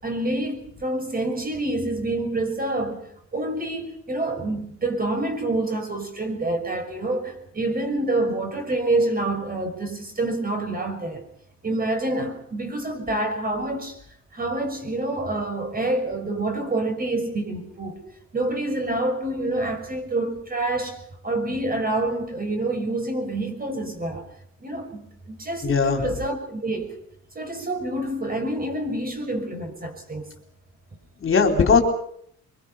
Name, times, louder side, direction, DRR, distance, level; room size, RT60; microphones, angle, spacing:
voice 1, 0.0-3.1 3.3-11.2 11.6-14.0 14.3-18.0 18.3-21.0 21.2-24.2 24.6-27.0 27.3-30.3, right 2 dB, 30° right, 6 dB, 6.3 m, -27 dB
voice 2, 25.6-26.1 31.2-31.8, left 5 dB, 45° left, 4 dB, 4.1 m, -18 dB
24.0 x 23.5 x 5.8 m, 0.67 s
cardioid pair, 90°, 30 cm